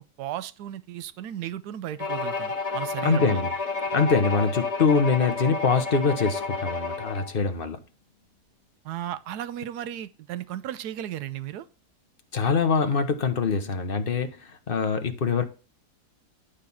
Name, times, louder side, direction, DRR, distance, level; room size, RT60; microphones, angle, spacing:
voice 1, 0.2-3.4 8.8-11.7, right 11 dB, 80° right, 1.2 m, -35 dB
Bowed string instrument, 2.0-7.3, left 4 dB, 25° left, 1.3 m, -30 dB
voice 2, 3.0-3.5 3.9-7.8 12.3-15.4, left 5 dB, 40° left, 1.0 m, -24 dB
11.5 x 4.1 x 7.1 m
omnidirectional pair, 1.7 m